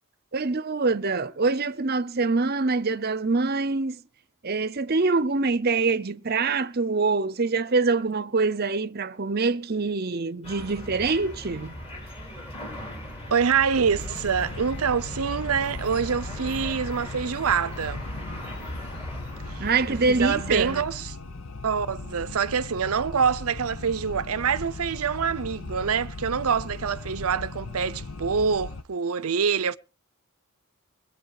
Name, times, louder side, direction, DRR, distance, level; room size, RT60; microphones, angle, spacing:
voice 1, 0.3-4.0 4.4-11.8 19.6-20.8, right 3 dB, 45° right, 0.7 m, -25 dB
sound 1, 10.4-20.9, equal, 25° left, 5.4 m, -38 dB
voice 2, 13.3-18.0 19.5-21.1 21.6-29.8, right 6 dB, 80° right, 0.6 m, -26 dB
sound 2, 13.7-28.8, left 3 dB, 65° left, 0.9 m, -38 dB
21.5 x 8.7 x 4.8 m
head